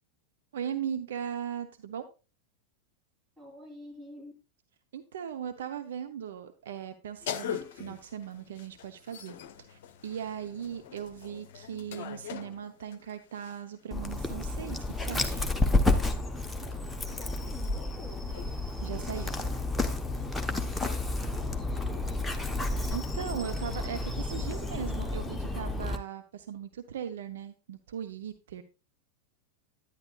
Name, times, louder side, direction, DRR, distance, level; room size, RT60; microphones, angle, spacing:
voice 1, 0.5-2.1 4.9-9.3 9.7-15.4 18.8-19.3 22.9-28.6, right 8 dB, 60° right, 8 dB, 0.6 m, -38 dB
voice 2, 3.4-4.3 17.1-18.2 21.2-22.4, left 1 dB, 10° right, 1 dB, 3.4 m, -48 dB
sound 1, 7.2-13.8 14.7-21.6, left 9 dB, 50° left, 0.8 m, -45 dB
Dog, 13.9-26.0, left 2 dB, 5° left, 0.9 m, -31 dB
10.5 x 9.7 x 2.3 m, 0.30 s
figure-of-eight pair, 90°, 0 cm